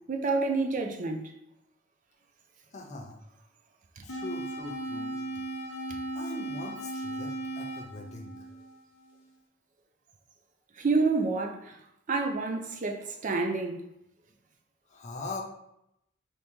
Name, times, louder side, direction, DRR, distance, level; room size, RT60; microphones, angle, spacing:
voice 1, 0.1-1.3 4.0-4.1 10.8-11.8 12.1-13.8, right 3 dB, 35° right, 0.4 m, -28 dB
voice 2, 2.7-3.2 4.0-5.2 6.1-8.3 14.9-15.4, left 2 dB, 35° left, 0.5 m, -41 dB
sound 1, 4.1-9.1, right 1 dB, 65° left, 0.7 m, -37 dB
2.9 x 2.8 x 3.5 m
head